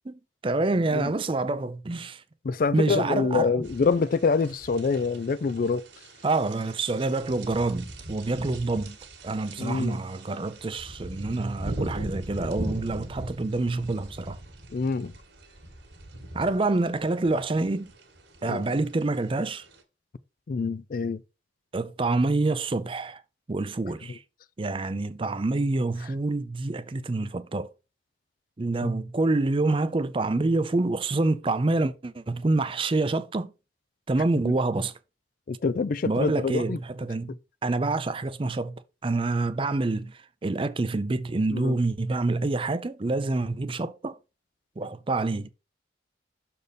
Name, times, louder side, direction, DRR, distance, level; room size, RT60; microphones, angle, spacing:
voice 1, 0.1-2.2 2.7-3.6 6.2-9.0 9.2-14.4 16.3-17.9 18.4-19.7 21.7-23.2 23.5-24.2 24.6-27.7 28.6-33.5 34.1-34.9 36.0-37.3 37.6-44.2 44.8-45.5, right 2 dB, 30° right, 0.5 m, -27 dB
voice 2, 2.4-5.9 9.6-10.0 14.7-15.1 18.4-18.6 20.5-21.2 24.1-24.2 28.8-28.9 34.4-34.6 35.5-36.8 41.5-41.7, left 4 dB, 50° left, 0.4 m, -26 dB
sound 1, 3.6-19.8, right 1 dB, 65° right, 1.8 m, -40 dB
6.6 x 4.2 x 5.2 m
head